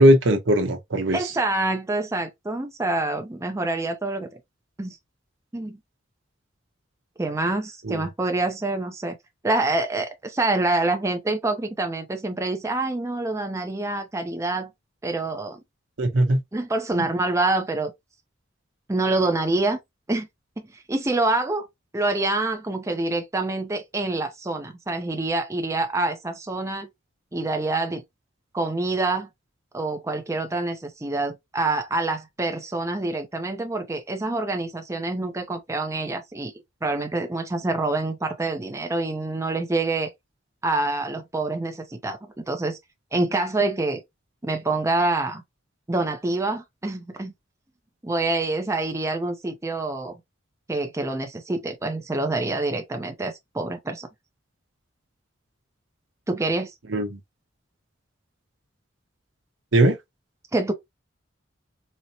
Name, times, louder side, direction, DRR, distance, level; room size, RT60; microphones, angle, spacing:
voice 1, 0.0-1.3 7.8-8.0 16.0-16.4 16.9-17.1 56.9-57.2 59.7-60.0, right 1 dB, 75° right, 0.9 m, -19 dB
voice 2, 1.1-4.3 4.8-5.0 5.5-5.8 7.2-9.2 9.4-14.7 15.0-15.6 16.5-17.9 18.9-19.8 20.1-20.3 20.7-21.7 21.9-26.9 27.3-28.0 28.5-29.3 29.7-36.5 36.8-40.1 40.6-42.2 42.5-42.8 43.1-44.0 44.4-45.4 45.9-47.3 48.0-50.2 50.7-54.1 56.3-56.7 60.5-60.7, right 2 dB, 15° right, 0.5 m, -26 dB
4.2 x 2.1 x 2.7 m
head